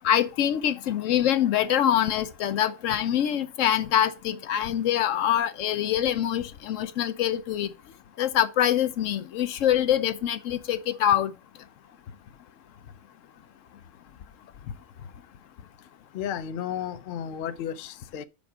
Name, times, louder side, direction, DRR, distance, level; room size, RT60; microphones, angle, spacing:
voice 1, 0.0-7.7 8.2-11.3, left 10 dB, 80° left, 1.0 m, -24 dB
voice 2, 16.1-18.2, left 9 dB, 60° left, 0.6 m, -33 dB
5.2 x 5.0 x 6.0 m
omnidirectional pair, 1.3 m